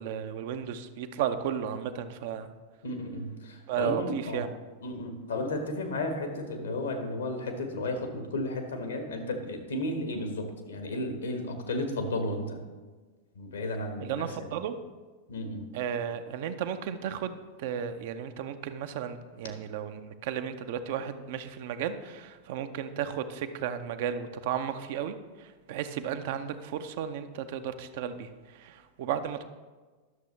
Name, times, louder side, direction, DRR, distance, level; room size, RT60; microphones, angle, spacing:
voice 1, 0.0-2.5 3.7-4.6 14.0-14.8 15.7-29.4, right 8 dB, 50° right, 9 dB, 0.5 m, -34 dB
voice 2, 2.8-4.4 4.8-12.6 13.3-14.3 15.3-15.7, left 1 dB, 70° left, 5 dB, 1.3 m, -33 dB
11.0 x 6.7 x 3.2 m, 1.3 s
figure-of-eight pair, 90°, 0 cm